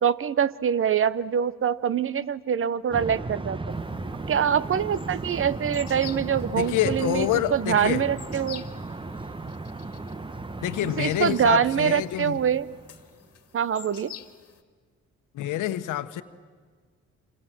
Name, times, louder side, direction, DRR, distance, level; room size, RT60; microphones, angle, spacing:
voice 1, 0.0-3.7 4.3-8.6 10.8-12.7 13.5-14.1, right 8 dB, 45° right, 18 dB, 0.9 m, -24 dB
sound 1, 2.9-13.2, right 3 dB, 15° right, 1.0 m, -36 dB
sound 2, 3.7-14.6, left 9 dB, 50° left, 2.0 m, -49 dB
voice 2, 6.6-8.0 10.6-12.4 15.3-16.2, left 13 dB, 85° left, 11 dB, 1.3 m, -27 dB
27.0 x 26.5 x 7.6 m, 1.5 s
cardioid pair, 90°, 30 cm